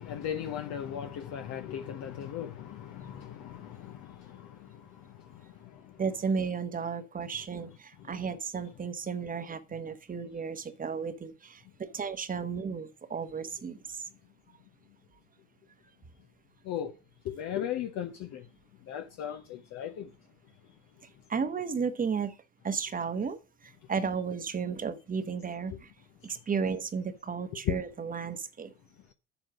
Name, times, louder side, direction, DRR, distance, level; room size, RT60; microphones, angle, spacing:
voice 1, 0.0-6.0 8.0-8.1 16.6-16.9 17.2-18.5 18.9-20.1 25.7-25.8 26.2-26.3 27.6-27.7, left 10 dB, 50° left, 1.0 m, -37 dB
voice 2, 6.0-14.0 21.3-22.4 22.6-25.9 26.2-28.7, right 6 dB, 25° right, 1.1 m, -34 dB
7.6 x 7.0 x 4.9 m
hypercardioid pair, 70°, 35 cm